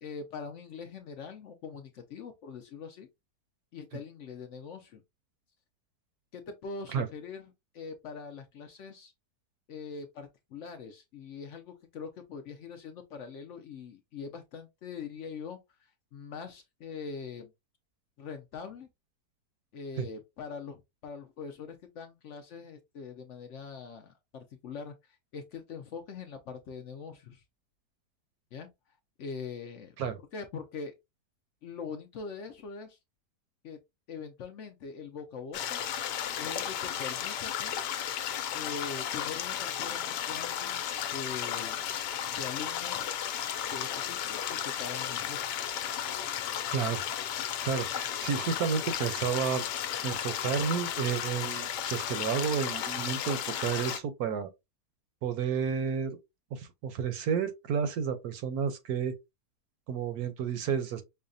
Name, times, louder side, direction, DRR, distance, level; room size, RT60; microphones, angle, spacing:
voice 1, 0.0-3.1 3.7-5.0 6.3-9.1 9.7-17.5 18.2-18.9 19.7-27.4 28.5-28.7 29.2-30.0 30.3-30.9 31.6-33.0 33.6-33.8 34.1-35.8 36.4-37.7 38.5-40.8 41.1-41.8 42.4-43.1 43.7-45.4, left 5 dB, 65° left, 0.7 m, -42 dB
sound 1, 35.5-54.0, left 10 dB, 85° left, 1.2 m, -34 dB
voice 2, 46.7-47.0 47.6-49.6 50.0-54.5 55.2-56.2 56.5-59.1 59.9-61.0, right 7 dB, 70° right, 1.1 m, -31 dB
5.5 x 2.2 x 2.5 m
omnidirectional pair, 1.8 m